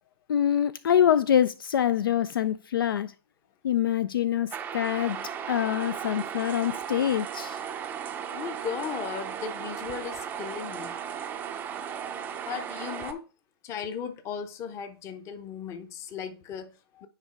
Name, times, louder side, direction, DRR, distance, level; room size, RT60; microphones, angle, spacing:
voice 1, 0.3-3.1 3.6-7.6, left 10 dB, 60° left, 0.4 m, -25 dB
sound 1, 4.5-13.1, right 8 dB, 15° right, 0.6 m, -36 dB
voice 2, 8.3-11.0 12.4-13.2 13.6-17.1, left 7 dB, 20° left, 0.8 m, -36 dB
9.7 x 4.7 x 3.4 m
hypercardioid pair, 135°, 13 cm